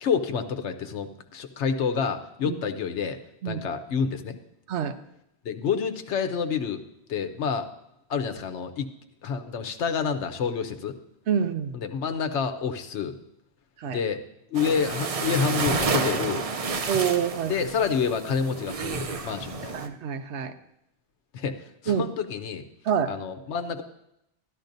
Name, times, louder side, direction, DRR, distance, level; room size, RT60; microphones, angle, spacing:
voice 1, 0.0-3.2 3.5-4.4 5.4-7.7 8.1-8.9 9.2-11.0 11.7-13.2 13.8-14.2 14.5-16.4 17.5-19.8 21.3-22.6 23.1-23.8, left 6 dB, 85° left, 8 dB, 1.1 m, -28 dB
voice 2, 11.3-11.7 13.8-14.0 16.9-17.6 19.7-20.5 21.9-22.0 22.8-23.2, right 8 dB, 85° right, 9 dB, 1.0 m, -26 dB
sound 1, 14.5-19.9, right 4 dB, 45° right, 0.5 m, -30 dB
13.0 x 11.5 x 2.6 m, 0.80 s
omnidirectional pair, 1.1 m